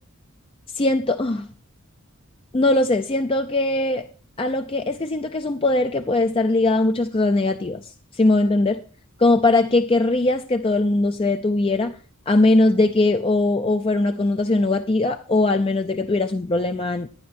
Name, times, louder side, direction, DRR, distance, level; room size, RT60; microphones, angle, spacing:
voice 1, 0.8-1.5 2.5-4.1 4.4-7.8 8.2-8.8 9.2-11.9 12.3-17.1, left 2 dB, 25° left, 0.5 m, -20 dB
11.5 x 9.9 x 4.3 m
head